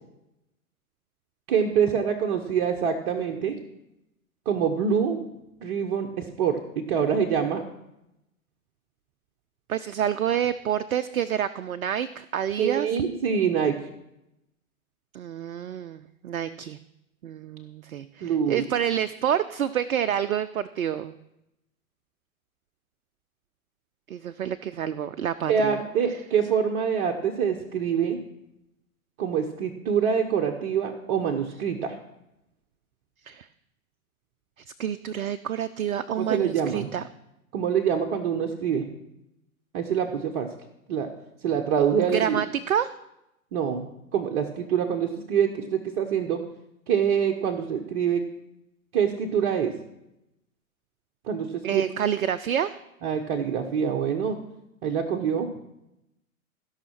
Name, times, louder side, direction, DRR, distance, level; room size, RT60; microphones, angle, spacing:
voice 1, 1.5-3.6 4.5-5.3 5.6-7.6 12.6-13.8 18.2-18.6 25.5-28.2 29.2-32.0 36.2-36.9 37.5-38.9 39.7-40.5 40.9-41.1 41.4-42.4 43.5-46.4 46.9-48.2 48.9-49.7 51.2-51.8 53.0-54.4 54.8-55.5, right 7 dB, 45° right, 2 dB, 1.1 m, -25 dB
voice 2, 9.7-12.9 15.1-16.8 17.2-21.1 24.1-25.8 33.3-33.5 34.8-37.0 42.0-42.9 51.6-52.8, right 9 dB, 70° right, 11 dB, 0.6 m, -28 dB
15.5 x 5.7 x 6.0 m, 0.88 s
figure-of-eight pair, 100°, 43 cm